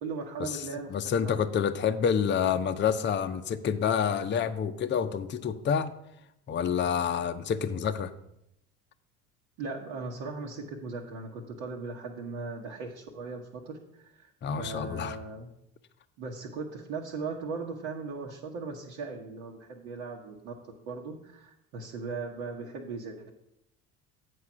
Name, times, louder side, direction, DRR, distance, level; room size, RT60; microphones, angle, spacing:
voice 1, 0.0-1.0 1.2-1.4 9.6-14.3 14.6-15.5 16.2-20.5 20.9-23.3, right 4 dB, 70° right, -3 dB, 1.1 m, -38 dB
voice 2, 0.9-5.9 6.5-8.1 14.4-15.2, left 7 dB, 25° left, 9 dB, 0.6 m, -28 dB
8.4 x 4.7 x 6.0 m, 0.82 s
hypercardioid pair, 60°, 42 cm